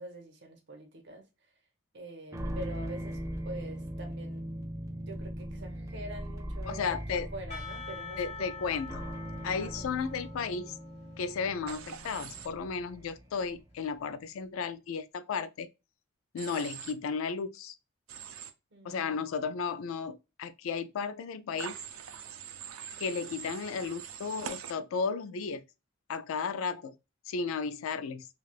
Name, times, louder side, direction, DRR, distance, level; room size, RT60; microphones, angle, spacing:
voice 1, 0.0-1.5 1.9-3.2 3.4-4.5 5.1-8.8 9.4-9.8 18.7-19.2, right 2 dB, 60° right, 0.9 m, -45 dB
sound 1, 2.3-13.7, equal, 15° right, 0.5 m, -40 dB
voice 2, 6.7-7.3 8.2-9.0 9.4-10.8 11.2-15.7 16.3-17.7 18.8-21.8 23.0-25.6 26.1-26.9 27.3-28.3, left 5 dB, 85° left, 0.3 m, -34 dB
Percussion / Church bell, 7.5-12.6, left 5 dB, 35° left, 1.0 m, -46 dB
Human voice / Train, 11.7-12.5 16.4-16.9 18.1-18.5 21.6-24.7, right 8 dB, 85° right, 0.4 m, -43 dB
3.3 x 2.3 x 2.4 m
head